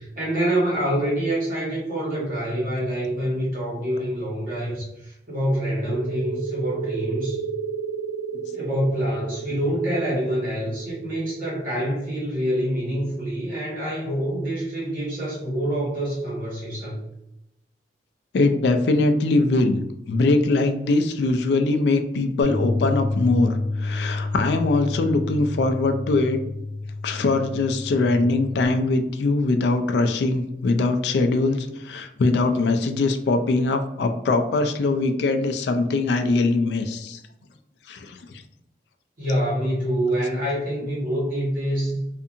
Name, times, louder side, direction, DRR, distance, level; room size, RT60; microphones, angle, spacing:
voice 1, 0.0-7.4 8.5-17.0 39.2-42.0, right 1 dB, 50° right, -6 dB, 1.3 m, -26 dB
sound 1, 5.7-13.0, right 7 dB, 90° right, 0.3 m, -33 dB
voice 2, 18.3-26.4 27.0-37.2 37.9-38.4, left 3 dB, 75° left, 7 dB, 0.3 m, -22 dB
Bass guitar, 22.4-28.7, left 2 dB, 5° right, 1.0 m, -29 dB
2.7 x 2.5 x 2.5 m, 0.86 s
head